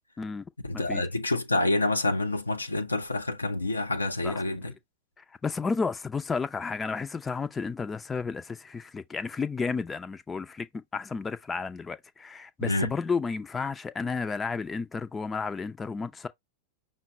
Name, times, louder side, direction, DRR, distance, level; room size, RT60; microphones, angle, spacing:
voice 1, 0.6-4.7 12.6-12.9, left 2 dB, 80° left, 0.7 m, -28 dB
voice 2, 4.2-4.6 5.4-10.7 10.9-16.3, left 4 dB, 15° left, 0.5 m, -32 dB
5.8 x 2.1 x 3.7 m
figure-of-eight pair, 90°, 0 cm